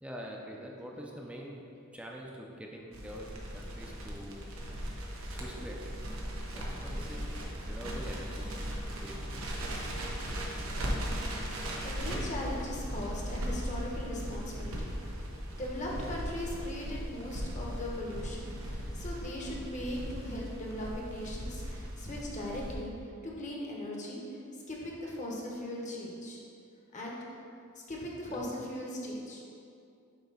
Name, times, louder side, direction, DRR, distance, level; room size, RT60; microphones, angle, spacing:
voice 1, 0.0-1.6 1.9-4.5 5.3-5.8 6.5-7.3 7.6-9.3 28.3-28.4, equal, 5° right, -1 dB, 0.6 m, -45 dB
Crackle, 2.9-22.7, equal, 90° right, 1.0 m, -38 dB
voice 2, 11.5-14.9 15.6-22.9 23.2-24.4 24.7-26.4 26.9-27.2 27.9-29.4, left 1 dB, 35° left, -3 dB, 1.1 m, -39 dB
7.3 x 3.0 x 5.6 m, 2.5 s
head